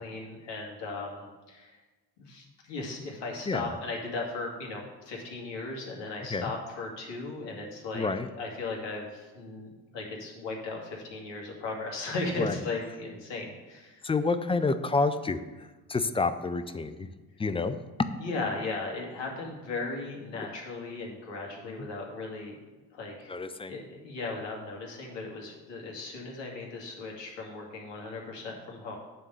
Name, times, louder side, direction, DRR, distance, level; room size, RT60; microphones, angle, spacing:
voice 1, 0.0-1.8 2.2-8.1 8.3-14.0 18.2-22.5 22.9-23.3 23.7-29.0, left 3 dB, 60° left, -1 dB, 2.3 m, -37 dB
voice 2, 3.5-3.8 6.3-6.5 7.9-8.3 12.4-12.6 14.0-17.1 17.4-17.8 21.7-21.9 23.3-23.7, left 3 dB, 15° left, 11 dB, 0.4 m, -29 dB
9.1 x 3.7 x 6.7 m, 1.2 s
hypercardioid pair, 55°, 49 cm